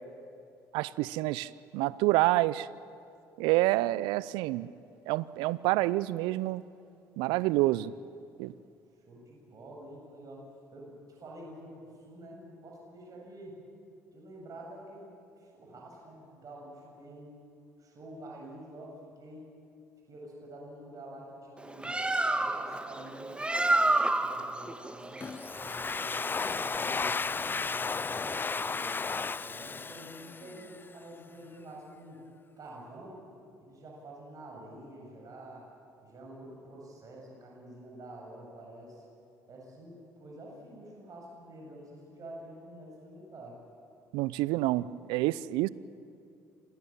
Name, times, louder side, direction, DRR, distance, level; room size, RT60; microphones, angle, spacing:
voice 1, 0.7-2.7 3.4-4.7 5.1-6.6 7.2-7.9 8.4-8.5 44.1-45.7, right 18 dB, 70° right, 19 dB, 0.6 m, -28 dB
voice 2, 9.1-10.4 10.7-13.6 14.1-17.3 17.8-19.4 20.1-21.9 22.3-25.3 25.5-29.0 29.4-32.2 32.6-33.2 33.6-35.7 36.0-39.1 39.5-43.6, right 1 dB, 45° right, -2 dB, 8.0 m, -48 dB
Bird, 21.6-26.8, right 2 dB, 10° right, 1.7 m, -30 dB
Domestic sounds home sounds, 25.2-30.8, left 4 dB, 25° left, 0.6 m, -34 dB
26.5 x 18.5 x 9.1 m, 2.5 s
hypercardioid pair, 55°, 8 cm